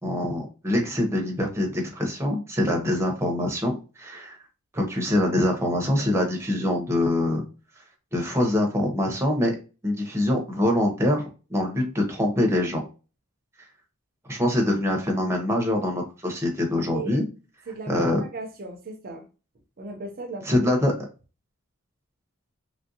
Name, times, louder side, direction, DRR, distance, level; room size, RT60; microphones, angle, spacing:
voice 1, 0.0-4.4 4.7-7.4 8.1-9.5 9.8-12.8 14.3-17.3 17.9-18.2 20.4-21.1, left 1 dB, 10° right, 0.7 m, -24 dB
voice 2, 17.7-19.2 19.8-20.6, right 3 dB, 40° right, 0.5 m, -37 dB
3.1 x 2.6 x 2.6 m
head